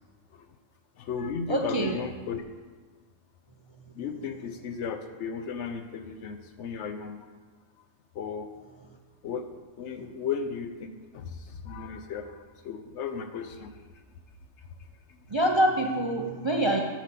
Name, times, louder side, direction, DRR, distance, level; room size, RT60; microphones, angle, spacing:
voice 1, 1.0-2.4 3.9-7.2 8.1-8.5 9.2-9.5 9.8-13.7 14.8-14.9, left 6 dB, 65° left, 8 dB, 0.8 m, -35 dB
voice 2, 1.5-1.9 15.3-16.8, right 1 dB, 35° right, 1 dB, 0.4 m, -25 dB
7.0 x 5.6 x 7.5 m, 1.4 s
omnidirectional pair, 1.4 m